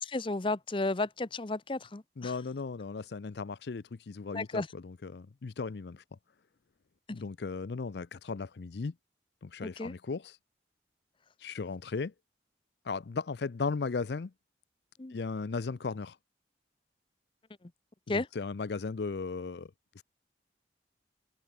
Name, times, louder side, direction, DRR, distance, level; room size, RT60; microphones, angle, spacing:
voice 1, 0.0-2.3 4.3-4.7 7.1-7.2 9.6-9.9 15.0-15.1 17.6-17.7 18.1-18.3, left 2 dB, 30° left, 0.7 m, -33 dB
voice 2, 2.2-6.0 7.1-8.9 9.4-10.4 11.4-12.1 12.9-14.3 15.1-16.2 18.1-19.7 20.0-20.1, left 4 dB, 65° left, 0.5 m, -36 dB
head